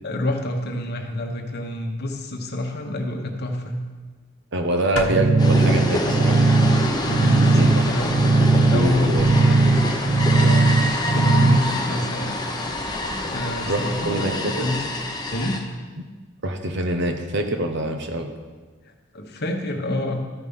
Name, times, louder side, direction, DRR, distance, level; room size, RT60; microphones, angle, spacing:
voice 1, 0.0-3.8 7.1-8.1 8.5-12.4 13.3-14.8 15.3-15.6 18.8-20.2, left 1 dB, 55° left, 3 dB, 1.2 m, -28 dB
voice 2, 4.5-6.4 7.5-7.7 8.7-9.3 13.7-14.7 16.4-18.3, right 1 dB, 60° right, 5 dB, 1.0 m, -25 dB
sound 1, 5.0-11.2, left 2 dB, 75° left, 1.1 m, -38 dB
sound 2, 5.1-11.6, right 3 dB, 40° right, 0.4 m, -18 dB
sound 3, 5.4-15.6, left 2 dB, 20° left, 1.0 m, -27 dB
13.0 x 5.1 x 5.5 m, 1.4 s
head